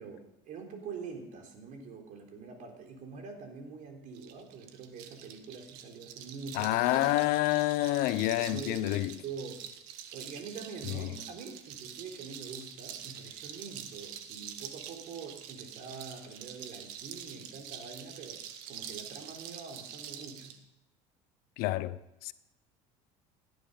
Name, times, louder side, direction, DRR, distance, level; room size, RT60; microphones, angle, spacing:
voice 1, 0.0-7.1 8.4-9.6 10.1-20.6, right 5 dB, 55° right, 3.8 m, -45 dB
sound 1, 4.1-20.6, right 9 dB, 80° right, 1.5 m, -46 dB
voice 2, 6.5-9.2 10.9-11.1 21.6-22.3, left 17 dB, 70° left, 0.7 m, -28 dB
17.5 x 11.0 x 5.5 m
supercardioid pair, 95°, 16 cm